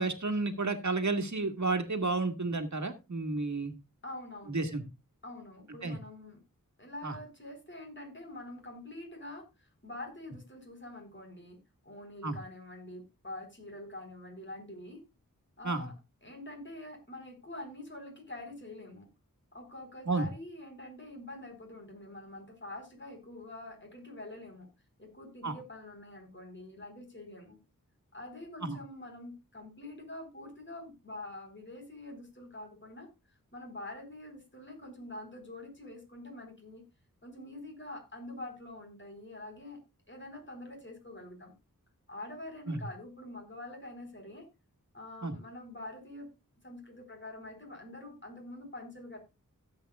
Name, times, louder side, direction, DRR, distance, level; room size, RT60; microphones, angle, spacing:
voice 1, 0.0-3.7 4.5-4.8 5.8-6.0 7.0-7.2 12.2-12.4 15.6-15.9 20.1-20.3 25.4-25.5 28.6-28.8 42.7-42.8 45.2-45.4, right 3 dB, 55° right, 7 dB, 1.8 m, -31 dB
voice 2, 4.0-4.6 5.2-6.4 6.8-11.6 11.8-15.0 15.6-15.9 16.2-19.1 19.5-24.7 25.0-27.6 28.1-33.1 33.5-36.8 37.2-39.8 40.1-41.5 42.1-44.5 44.9-46.3 46.6-49.2, left 1 dB, 35° left, 4 dB, 4.2 m, -45 dB
16.0 x 8.1 x 2.3 m, 0.26 s
wide cardioid pair, 60°, 34 cm